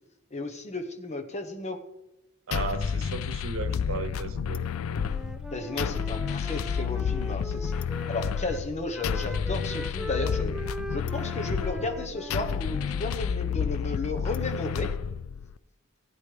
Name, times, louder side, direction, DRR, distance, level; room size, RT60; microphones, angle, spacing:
voice 1, 0.3-1.8 5.5-7.7 8.1-10.5 10.9-14.9, left 2 dB, 35° left, 5 dB, 1.1 m, -33 dB
sound 1, 2.5-15.5, left 7 dB, 85° left, 0.4 m, -30 dB
voice 2, 2.5-4.7, right 4 dB, 80° right, 10 dB, 1.0 m, -35 dB
Wind instrument woodwind instrument, 4.9-8.6 8.9-13.3, equal, 5° right, 0.4 m, -40 dB
16.5 x 9.5 x 3.3 m, 0.96 s
head